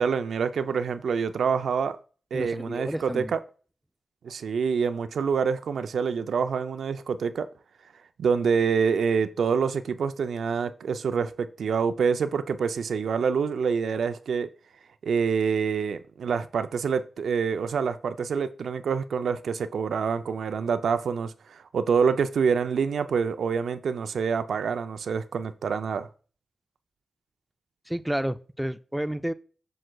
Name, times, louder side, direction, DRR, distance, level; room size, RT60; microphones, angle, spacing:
voice 1, 0.0-2.0 2.3-3.4 4.2-7.5 8.2-14.5 15.0-26.1, right 6 dB, 85° right, 0.4 m, -26 dB
voice 2, 2.3-3.3 27.9-29.3, right 1 dB, 5° right, 0.3 m, -30 dB
7.7 x 6.3 x 2.3 m
cardioid pair, 80°, 0 cm